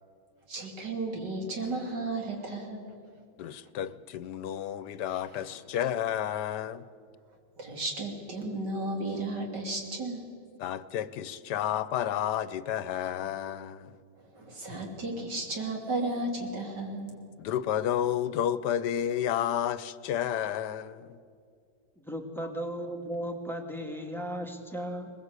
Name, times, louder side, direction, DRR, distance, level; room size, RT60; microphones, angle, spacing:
voice 1, 0.5-2.9 5.4-5.6 7.6-10.3 14.3-17.2, right 2 dB, 90° right, 3.8 m, -34 dB
voice 2, 3.4-6.8 10.6-13.9 17.4-21.2, left 10 dB, 80° left, 1.3 m, -31 dB
voice 3, 22.0-25.1, equal, ahead, 2.0 m, -36 dB
21.5 x 20.5 x 8.2 m
omnidirectional pair, 1.8 m